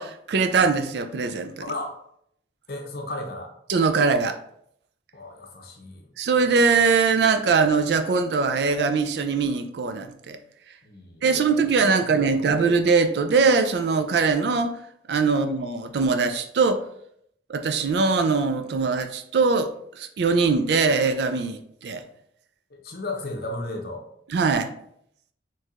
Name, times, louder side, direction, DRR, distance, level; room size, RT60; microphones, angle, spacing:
voice 1, 0.0-1.5 3.7-4.4 6.2-10.4 11.2-14.8 15.1-16.8 17.5-19.7 19.9-22.0 24.3-24.7, right 4 dB, 70° right, 8 dB, 0.4 m, -22 dB
voice 2, 1.7-2.0 2.7-3.5 5.1-6.1 10.8-11.3 11.6-11.7 12.0-12.4 15.3-15.4 22.7-24.0, left 2 dB, 55° left, 2 dB, 0.7 m, -34 dB
4.4 x 3.0 x 2.4 m, 0.70 s
head